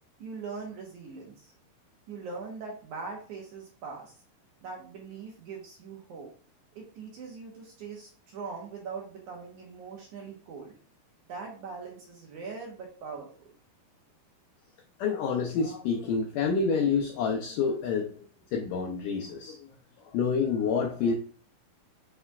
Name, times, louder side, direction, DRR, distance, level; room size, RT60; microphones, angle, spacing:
voice 1, 0.2-1.5 2.1-4.2 4.6-6.3 6.8-10.7 11.3-13.5, right 4 dB, 65° right, -1 dB, 2.2 m, -41 dB
voice 2, 15.0-18.1 18.5-19.6 20.1-21.1, left 5 dB, 80° left, 2 dB, 1.9 m, -28 dB
8.0 x 4.9 x 2.4 m, 0.41 s
omnidirectional pair, 4.5 m